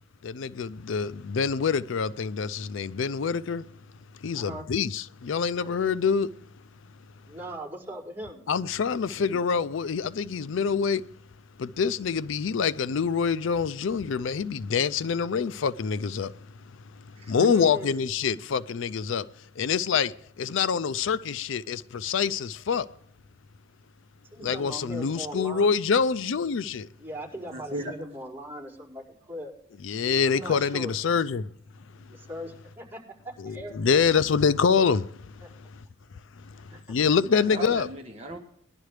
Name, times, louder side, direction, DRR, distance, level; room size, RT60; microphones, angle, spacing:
voice 1, 0.2-3.7 4.2-6.3 8.5-11.0 11.6-16.3 17.0-19.3 19.6-22.9 24.4-26.9 29.8-31.5 33.4-35.8 36.4-37.9, left 6 dB, 65° left, 0.4 m, -26 dB
voice 2, 4.3-4.7 7.3-8.4 17.3-18.0 24.3-25.7 27.0-29.5 30.2-30.9 32.0-34.0 35.4-35.5 36.5-36.8, equal, 10° right, 4.9 m, -39 dB
voice 3, 17.2-17.5 27.5-27.9 37.3-38.4, right 1 dB, 30° right, 1.2 m, -36 dB
21.0 x 11.5 x 3.3 m
head